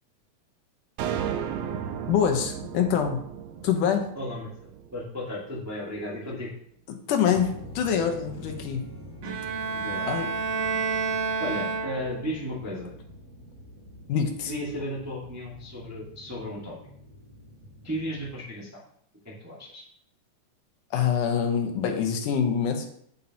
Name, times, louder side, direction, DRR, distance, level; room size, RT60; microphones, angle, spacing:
sound 1, 1.0-5.4, right 8 dB, 85° right, 1.4 m, -34 dB
voice 1, 2.1-3.2 3.6-4.1 7.1-8.8 10.1-10.3 14.1-14.5 20.9-22.9, left 7 dB, 85° left, 4 dB, 2.6 m, -25 dB
voice 2, 4.1-6.5 9.7-10.1 11.4-12.9 14.4-16.7 17.8-18.8 19.2-19.8, equal, 10° right, -5 dB, 1.0 m, -35 dB
sound 2, 7.2-18.4, equal, 40° right, 1.5 m, -45 dB
Bowed string instrument, 9.2-12.4, right 5 dB, 65° right, 1.1 m, -29 dB
8.3 x 8.3 x 2.9 m, 0.68 s
omnidirectional pair, 3.6 m